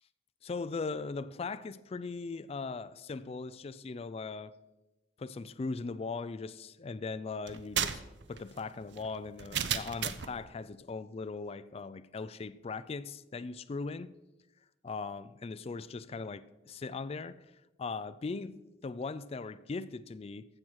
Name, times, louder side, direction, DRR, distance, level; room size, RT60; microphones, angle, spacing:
voice 1, 0.4-4.6 5.2-8.0 8.3-14.1 14.8-20.5, left 4 dB, 35° left, 0.4 m, -39 dB
sound 1, 7.5-10.4, right 8 dB, 70° right, 0.7 m, -34 dB
15.0 x 6.2 x 4.6 m
head